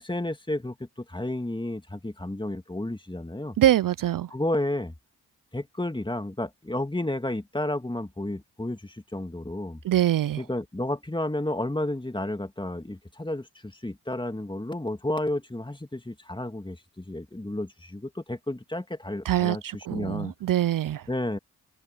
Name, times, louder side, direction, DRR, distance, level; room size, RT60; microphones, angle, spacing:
voice 1, 0.0-3.6 4.3-4.9 5.5-9.8 10.4-20.3 21.1-21.4, left 1 dB, 10° left, 2.4 m, -32 dB
voice 2, 3.6-4.3 9.8-10.5 19.2-21.1, right 12 dB, 55° right, 0.5 m, -24 dB
open air
supercardioid pair, 45°, 40 cm